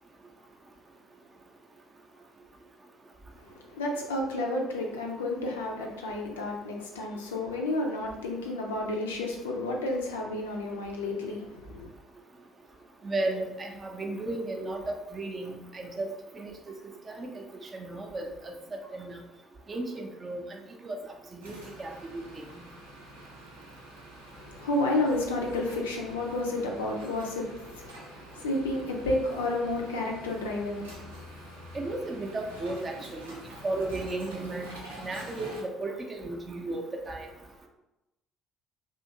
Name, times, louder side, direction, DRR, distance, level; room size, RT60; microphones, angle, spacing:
voice 1, 3.4-11.9 24.4-31.3, left 2 dB, 80° left, 0 dB, 0.4 m, -31 dB
voice 2, 13.0-14.8 15.1-16.1 16.4-16.5 17.1-18.3 18.9-19.1 19.7-21.0 21.3-21.5 21.8-22.2 31.7-33.4 33.6-37.3, right 2 dB, 35° right, 2 dB, 0.5 m, -34 dB
sound 1, 21.4-35.6, right 1 dB, 85° right, 0.5 m, -47 dB
2.7 x 2.4 x 2.6 m, 0.97 s
figure-of-eight pair, 50°, 0 cm